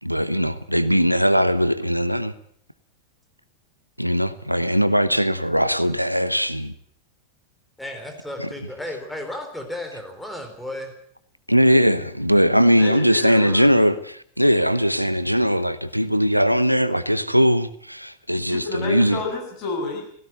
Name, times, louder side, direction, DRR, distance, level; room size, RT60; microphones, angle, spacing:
voice 1, 0.0-2.3 4.0-6.7 11.5-19.2, equal, 90° right, 0.9 m, -20 dB
voice 2, 7.8-10.9, left 1 dB, 5° left, 4.0 m, -34 dB
voice 3, 11.6-12.1 12.6-13.8 18.5-20.1, left 3 dB, 35° left, 8.0 m, -30 dB
17.0 x 17.0 x 9.2 m
figure-of-eight pair, 90°, 0 cm